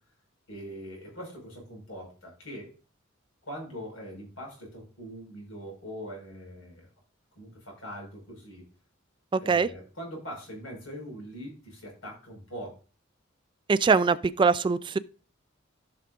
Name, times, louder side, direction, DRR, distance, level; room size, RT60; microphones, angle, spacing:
voice 1, 0.5-2.7 3.5-6.9 7.4-8.6 9.4-12.8, equal, 80° left, 5.2 m, -42 dB
voice 2, 9.3-9.7 13.7-15.0, right 4 dB, 25° right, 0.3 m, -23 dB
15.0 x 5.7 x 2.5 m
head